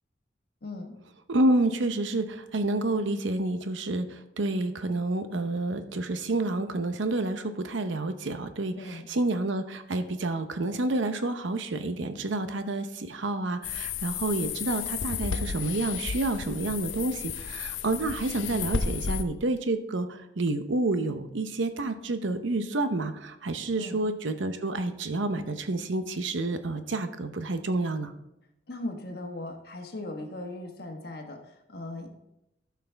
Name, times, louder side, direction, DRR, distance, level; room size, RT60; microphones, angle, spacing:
voice 1, 0.6-0.9 8.8-9.1 23.7-24.0 28.7-32.1, left 2 dB, 55° left, 3 dB, 1.3 m, -38 dB
voice 2, 1.3-28.1, right 2 dB, 80° right, 9 dB, 0.8 m, -29 dB
sound 1, 13.6-19.2, left 6 dB, 85° left, 0.6 m, -33 dB
12.5 x 5.9 x 3.4 m, 0.86 s
head